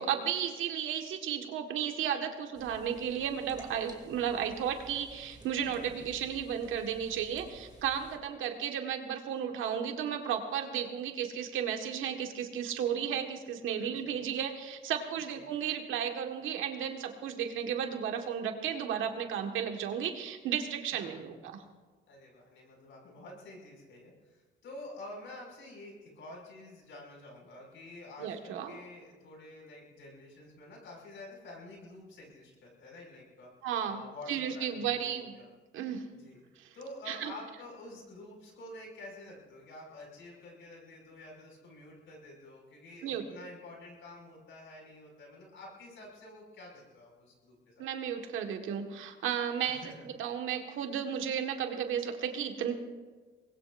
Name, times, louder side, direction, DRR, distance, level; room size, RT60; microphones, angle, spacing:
voice 1, 0.0-21.6 28.2-28.8 33.6-34.0 34.3-35.3 35.7-36.1 36.6-36.7 37.1-37.3 43.0-43.2 47.8-52.7, right 8 dB, 85° right, 4 dB, 1.6 m, -34 dB
sound 1, 2.5-8.2, right 2 dB, 20° right, 2.7 m, -53 dB
voice 2, 5.7-6.1 13.8-14.3 15.3-15.6 20.9-21.2 22.1-33.5 33.8-35.5 36.1-36.4 36.7-47.9 49.7-50.1, left 2 dB, 75° left, -1 dB, 6.0 m, -49 dB
24.5 x 20.0 x 2.6 m, 1.3 s
cardioid pair, 90°, 20 cm